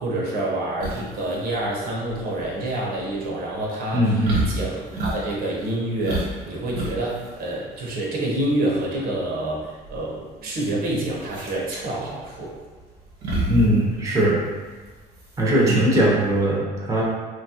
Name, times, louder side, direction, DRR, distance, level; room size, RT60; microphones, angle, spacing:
voice 1, 0.0-4.0 4.5-12.5 15.5-15.8, right 1 dB, 60° right, -4 dB, 0.8 m, -27 dB
sound 1, 0.8-16.4, right 2 dB, 90° right, 1.1 m, -32 dB
voice 2, 3.9-4.4 13.5-14.4 15.4-17.0, right 1 dB, 20° right, -4 dB, 0.7 m, -20 dB
3.0 x 2.3 x 2.8 m, 1.4 s
cardioid pair, 110°, 17 cm